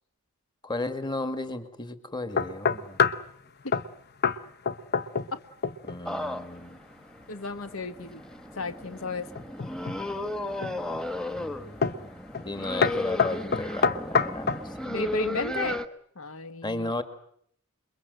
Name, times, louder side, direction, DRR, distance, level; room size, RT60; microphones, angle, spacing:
voice 1, 0.6-3.0 5.8-6.8 11.3-12.1 12.5-14.7 16.6-17.0, left 2 dB, 20° left, 9 dB, 2.1 m, -34 dB
sound 1, 2.4-3.3 3.7-3.9 4.2-4.4 4.7-5.4 5.6-6.0 9.4-10.0 10.6-11.0 11.8-12.1 12.3-12.5 12.8-14.7, left 5 dB, 50° left, 1.1 m, -26 dB
sound 2, 6.1-15.9, left 1 dB, 5° left, 1.3 m, -35 dB
voice 2, 7.3-8.2 8.5-9.3 14.8-15.8 16.1-16.9, left 3 dB, 70° left, 10 dB, 1.4 m, -33 dB
28.0 x 23.0 x 7.9 m, 0.66 s
head